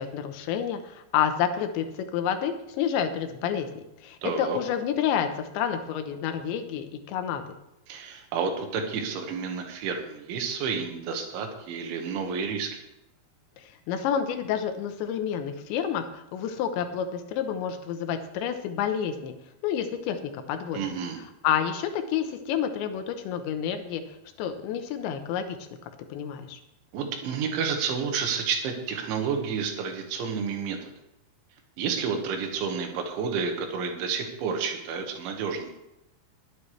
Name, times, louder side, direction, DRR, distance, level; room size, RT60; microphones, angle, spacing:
voice 1, 0.0-1.9 2.1-7.6 13.6-19.3 19.6-20.8 21.4-25.6 26.1-26.6, left 8 dB, 80° left, 7 dB, 3.3 m, -29 dB
voice 2, 4.2-4.6 7.9-12.8 20.7-21.2 26.9-30.9 31.8-35.7, right 6 dB, 85° right, 4 dB, 3.9 m, -30 dB
21.0 x 9.6 x 3.3 m, 0.87 s
omnidirectional pair, 5.2 m